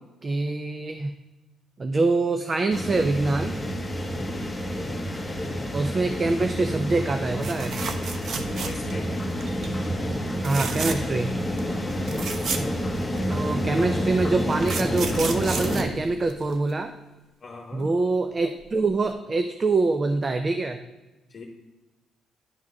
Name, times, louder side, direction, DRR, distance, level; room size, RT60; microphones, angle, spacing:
voice 1, 0.2-1.1 1.8-3.5 5.7-7.8 10.4-11.3 13.3-16.9 17.7-20.8, right 3 dB, 35° right, 8 dB, 0.5 m, -25 dB
sound 1, 2.7-15.9, equal, 10° left, 1.1 m, -29 dB
voice 2, 4.2-4.5 8.5-9.1 11.8-12.3 17.4-17.9 21.3-21.4, left 3 dB, 40° left, 2 dB, 1.1 m, -41 dB
sound 2, 7.4-9.0 9.4-9.7 10.4-11.2 11.6-11.7 11.9-13.4 14.2-16.7 18.6-18.8 19.1-19.2, right 5 dB, 60° right, 0.8 m, -33 dB
10.5 x 3.6 x 6.4 m, 1.1 s
cardioid pair, 90°, 0 cm